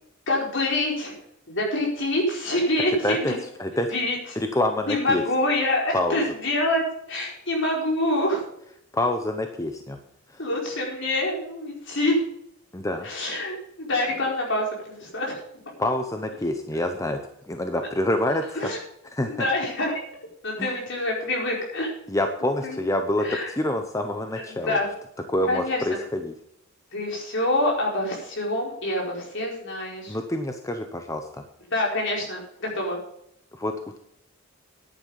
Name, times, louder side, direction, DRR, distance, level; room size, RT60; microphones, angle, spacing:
voice 1, 0.3-1.1 1.5-3.4 3.9-4.2 4.9-6.8 7.1-8.4 10.4-12.2 13.0-15.4 18.5-18.8 19.3-19.9 20.4-21.9 22.6-22.8 23.2-23.5 24.4-24.9 25.4-25.8 26.9-30.2 31.7-33.0, left 1 dB, 60° left, -1 dB, 4.6 m, -26 dB
voice 2, 3.0-3.3 3.6-3.9 4.4-5.2 5.9-6.2 8.9-10.0 12.7-13.1 15.8-17.2 17.5-18.6 19.1-19.5 20.6-20.7 22.1-24.8 25.3-26.3 30.1-31.3 33.5-34.0, left 1 dB, 15° left, 5 dB, 0.8 m, -26 dB
10.5 x 9.6 x 5.4 m, 0.74 s
head